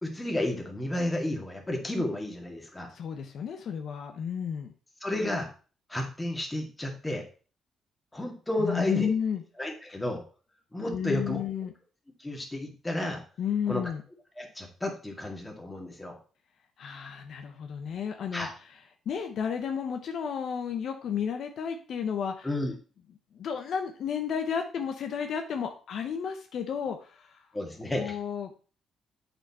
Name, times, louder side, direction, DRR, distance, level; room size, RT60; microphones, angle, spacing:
voice 1, 0.0-2.9 5.0-5.5 5.9-7.2 8.1-9.1 9.6-10.2 10.7-11.4 12.2-13.2 13.7-13.8 14.4-16.2 18.3-18.5 22.4-22.7 27.5-28.2, left 1 dB, 15° left, 1 dB, 2.0 m, -32 dB
voice 2, 2.9-4.7 8.6-9.4 10.9-11.7 13.4-14.0 16.8-18.8 19.1-22.5 23.3-27.4 28.0-28.5, left 7 dB, 65° left, 5 dB, 0.8 m, -32 dB
7.9 x 4.5 x 4.2 m, 0.38 s
cardioid pair, 90°, 0 cm